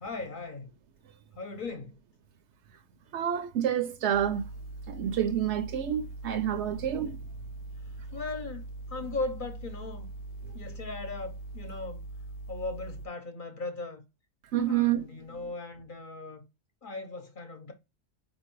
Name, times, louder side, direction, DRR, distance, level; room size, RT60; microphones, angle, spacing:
voice 1, 0.0-0.7 1.4-2.0 8.1-8.6 8.9-10.1 10.5-12.0 12.5-14.0 14.6-16.4 16.8-17.7, left 3 dB, 50° left, 0.8 m, -38 dB
voice 2, 3.1-4.4 4.9-7.2 14.5-15.0, right 10 dB, 70° right, 0.9 m, -28 dB
sound 1, 4.1-13.1, right 2 dB, 90° left, 1.0 m, -42 dB
4.2 x 2.7 x 4.5 m
omnidirectional pair, 1.3 m